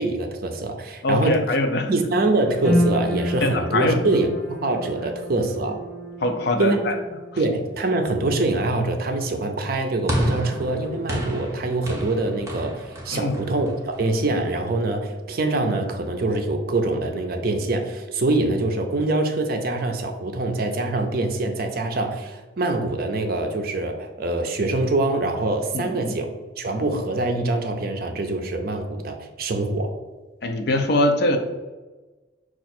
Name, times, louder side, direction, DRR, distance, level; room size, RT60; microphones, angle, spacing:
voice 1, 0.0-1.4 1.9-5.8 6.6-6.9 7.4-26.3 26.6-29.9, right 2 dB, 50° right, 5 dB, 0.5 m, -24 dB
voice 2, 1.0-1.9 3.4-4.0 6.2-6.9 13.1-13.4 25.7-26.1 30.4-31.4, left 1 dB, 55° left, 5 dB, 0.5 m, -22 dB
sound 1, 2.6-15.0 15.3-16.3 16.7-16.8, left 1 dB, ahead, 1.3 m, -32 dB
sound 2, 10.1-14.5, equal, 15° right, 0.7 m, -30 dB
4.9 x 2.4 x 4.3 m, 1.2 s
head